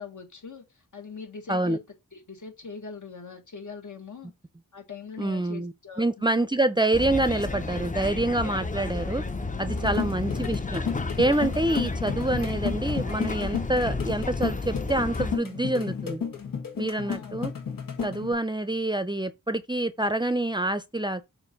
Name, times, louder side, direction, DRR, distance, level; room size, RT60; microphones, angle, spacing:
voice 1, 0.0-1.8 2.1-4.3 4.7-6.4 9.8-10.1 17.0-17.4, left 5 dB, 65° left, 1.8 m, -42 dB
voice 2, 5.2-5.7 6.0-9.2 9.6-10.8 11.2-16.2 16.8-17.5 18.0-21.2, right 1 dB, 15° right, 0.6 m, -26 dB
sound 1, 6.9-15.4, left 3 dB, 25° left, 0.7 m, -32 dB
sound 2, 9.7-18.3, left 6 dB, 80° left, 1.5 m, -33 dB
6.9 x 2.7 x 5.3 m
cardioid pair, 65°, 33 cm